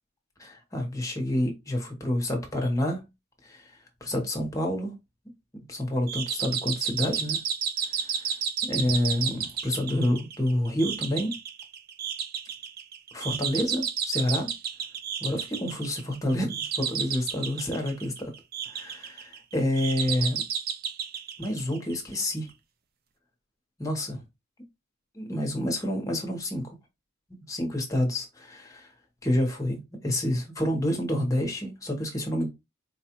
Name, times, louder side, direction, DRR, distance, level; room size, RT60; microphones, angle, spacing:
voice 1, 0.4-3.0 3.4-3.7 4.0-4.9 5.7-7.4 7.8-8.4 8.6-11.3 13.1-14.5 15.2-18.3 18.7-20.4 21.4-22.5 23.8-24.2 25.1-26.8 27.3-28.9 29.2-32.5, left 1 dB, 15° left, 0.9 m, -28 dB
sound 1, 6.1-22.2, right 7 dB, 45° right, 0.4 m, -32 dB
4.5 x 2.3 x 2.9 m
head